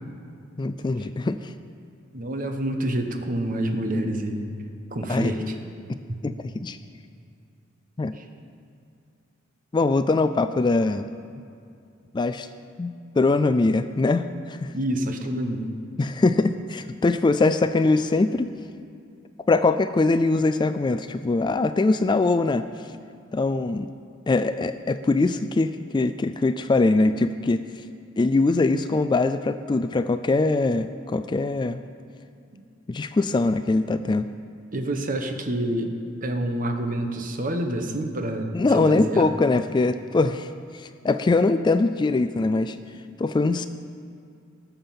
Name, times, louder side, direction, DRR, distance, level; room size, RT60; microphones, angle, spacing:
voice 1, 0.6-1.5 5.1-5.3 6.2-6.8 8.0-8.2 9.7-11.1 12.1-12.5 12.8-14.7 16.0-18.5 19.5-22.6 23.3-23.9 24.3-27.6 28.2-31.8 32.9-34.3 38.5-42.8 43.2-43.7, left 3 dB, 25° left, 11 dB, 0.3 m, -22 dB
voice 2, 2.1-4.4 4.9-5.5 6.1-6.2 8.1-8.2 14.7-15.7 34.7-35.9 36.2-39.3, right 1 dB, 45° right, 5 dB, 1.1 m, -27 dB
19.0 x 7.1 x 5.7 m, 2.4 s
head